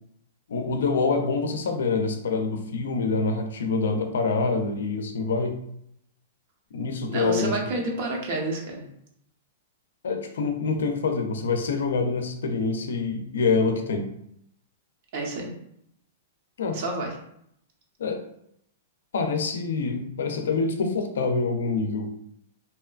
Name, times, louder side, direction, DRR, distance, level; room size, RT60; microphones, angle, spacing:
voice 1, 0.5-5.6 6.7-7.7 10.0-14.1 16.6-16.8 18.0-18.2 19.1-22.1, left 4 dB, 85° left, 6 dB, 0.4 m, -26 dB
voice 2, 7.1-8.9 15.1-15.5 16.7-17.1, right 2 dB, 55° right, 0 dB, 0.7 m, -29 dB
2.8 x 2.2 x 2.3 m, 0.74 s
hypercardioid pair, 150°, 0 cm